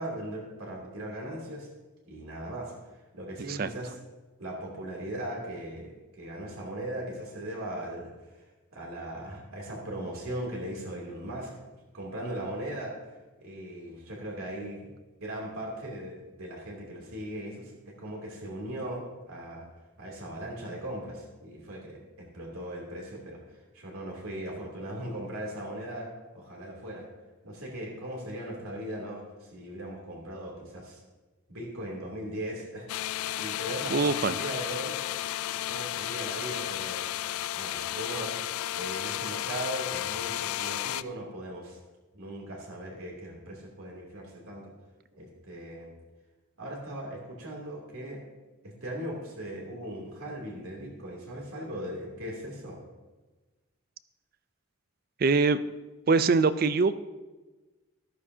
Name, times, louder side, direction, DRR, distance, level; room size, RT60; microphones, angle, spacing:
voice 1, 0.0-1.7 2.0-2.7 3.1-3.9 4.4-8.5 8.7-11.5 11.9-12.9 13.4-14.9 15.2-19.7 20.0-27.0 27.4-31.0 31.5-32.9 33.3-35.0 35.5-37.1 37.5-38.3 38.8-41.8 42.1-44.7 45.2-45.9 46.6-48.2 48.6-52.8, right 1 dB, 80° right, -2 dB, 2.8 m, -38 dB
sound 1, 32.9-41.0, left 13 dB, 80° left, 0.3 m, -33 dB
voice 2, 33.9-34.5 55.2-55.6 56.1-57.0, right 4 dB, 45° right, 14 dB, 0.4 m, -23 dB
14.0 x 12.5 x 2.8 m, 1.2 s
head